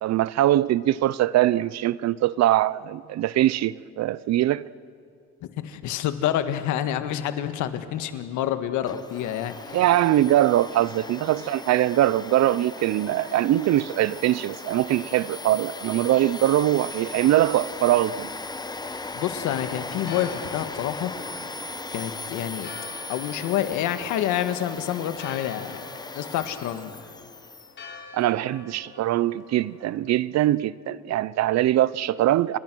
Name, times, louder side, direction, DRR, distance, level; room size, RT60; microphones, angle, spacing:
voice 1, 0.0-4.6 9.7-18.3 28.1-32.6, right 14 dB, 65° right, 0.7 m, -22 dB
voice 2, 5.4-9.8 19.1-21.1 21.9-22.7 23.1-25.9 26.1-27.1, left 11 dB, 85° left, 1.7 m, -28 dB
Domestic sounds home sounds, 8.9-27.7, left 3 dB, 15° left, 0.9 m, -38 dB
Church bell, 19.8-30.0, left 6 dB, 40° left, 4.0 m, -46 dB
29.5 x 24.0 x 6.2 m
cardioid pair, 115°, 29 cm